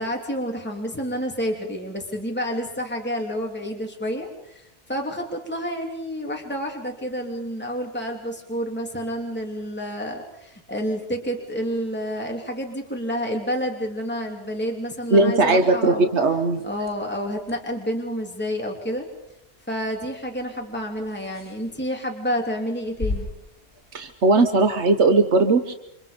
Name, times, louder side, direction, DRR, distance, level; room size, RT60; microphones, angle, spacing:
voice 1, 0.0-16.1 16.6-19.1 19.7-23.3, equal, 10° left, 1 dB, 3.2 m, -29 dB
voice 2, 15.1-16.6 23.9-25.7, right 3 dB, 85° right, 7 dB, 1.5 m, -18 dB
sound 1, 16.7-25.0, left 2 dB, 55° left, 5.2 m, -40 dB
29.5 x 26.0 x 5.3 m, 0.81 s
omnidirectional pair, 1.1 m